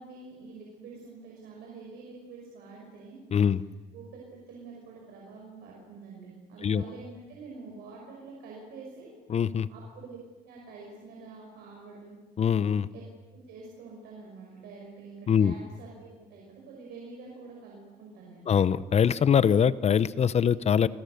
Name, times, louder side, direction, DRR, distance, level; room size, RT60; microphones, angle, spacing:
voice 1, 0.0-3.2 3.9-9.1 9.7-10.2 10.4-12.2 12.9-13.0 13.3-18.5, right 4 dB, 90° right, -2 dB, 5.9 m, -46 dB
voice 2, 3.3-3.6 6.6-6.8 9.3-9.7 12.4-12.9 15.3-15.5 18.5-20.9, left 8 dB, 40° left, 17 dB, 0.8 m, -23 dB
29.0 x 22.5 x 6.8 m, 1.2 s
cardioid pair, 110°, 16 cm